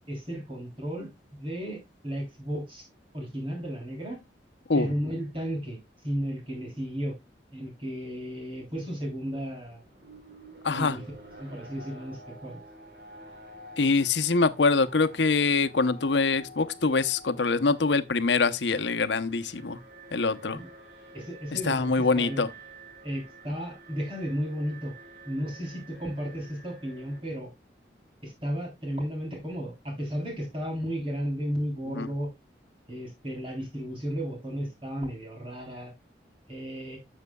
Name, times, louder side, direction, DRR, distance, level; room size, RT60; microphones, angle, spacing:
voice 1, 0.1-2.9 3.1-4.2 4.7-5.8 6.0-7.2 7.5-9.8 10.7-11.0 11.4-12.6 20.5-20.7 21.1-22.4 23.0-24.9 25.3-27.5 28.2-32.3 32.9-35.9 36.5-37.0, equal, 30° right, 3.4 m, -34 dB
Alarm, 9.5-27.2, right 1 dB, 60° right, 3.8 m, -50 dB
voice 2, 10.6-11.0 13.8-19.8 20.1-20.6 21.5-22.5 31.9-32.1, left 4 dB, 80° left, 0.8 m, -24 dB
12.0 x 7.3 x 2.3 m
head